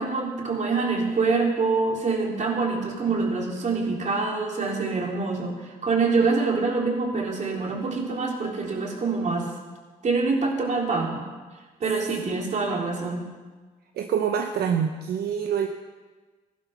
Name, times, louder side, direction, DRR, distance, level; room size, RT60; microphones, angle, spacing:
voice 1, 0.0-9.5 10.0-11.2 11.8-13.2, right 4 dB, 50° right, 0 dB, 3.6 m, -25 dB
voice 2, 14.0-15.7, right 8 dB, 75° right, 5 dB, 0.9 m, -25 dB
15.0 x 11.5 x 5.9 m, 1.3 s
cardioid pair, 75°, 16 cm